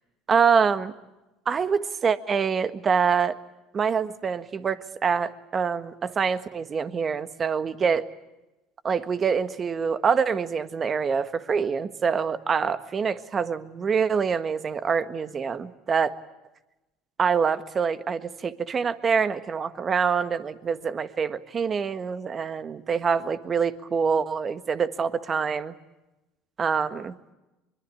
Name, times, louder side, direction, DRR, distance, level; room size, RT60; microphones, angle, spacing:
voice 1, 0.3-0.9 1.4-3.3 3.7-8.1 8.8-16.1 17.2-25.7 26.6-27.1, right 6 dB, 35° right, 11 dB, 1.5 m, -25 dB
24.0 x 23.0 x 8.6 m, 1.0 s
hypercardioid pair, 80°, 0 cm